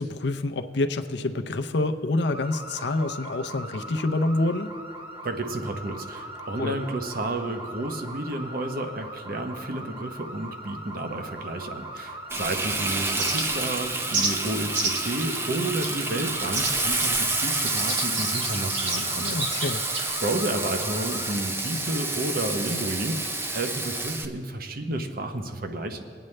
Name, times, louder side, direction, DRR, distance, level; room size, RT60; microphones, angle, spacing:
voice 1, 0.0-4.7 6.6-6.7 19.2-19.8, left 2 dB, 65° left, 7 dB, 0.6 m, -27 dB
sound 1, 2.3-21.3, right 1 dB, 30° right, 1.6 m, -40 dB
voice 2, 5.2-19.5 20.2-26.0, right 1 dB, 55° right, 6 dB, 0.8 m, -31 dB
Frying (food), 12.3-24.3, right 2 dB, 15° right, 0.5 m, -29 dB
sound 2, 13.2-13.7 14.1-14.3 14.7-15.1 15.8-16.0 16.5-20.1, right 3 dB, 85° right, 1.6 m, -30 dB
21.0 x 8.9 x 3.3 m, 2.4 s
head